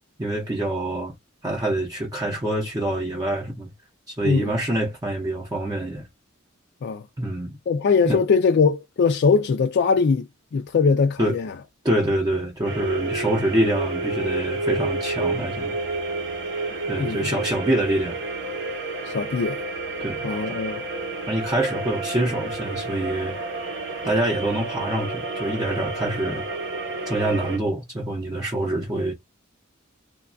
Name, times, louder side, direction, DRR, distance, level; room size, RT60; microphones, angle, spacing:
voice 1, 0.2-1.1 1.4-3.7 4.1-6.0 7.2-7.6 8.0-8.2 11.2-11.4 11.8-15.8 16.9-18.2 20.0-20.6 21.3-23.4 24.0-26.4 27.1-29.1, right 1 dB, 20° right, 0.6 m, -25 dB
voice 2, 7.7-10.3 10.5-11.5 17.0-17.3 19.0-19.6 20.2-20.9, left 5 dB, 55° left, 0.3 m, -21 dB
sound 1, 12.6-27.6, right 2 dB, 60° right, 0.8 m, -30 dB
3.0 x 2.2 x 2.4 m
head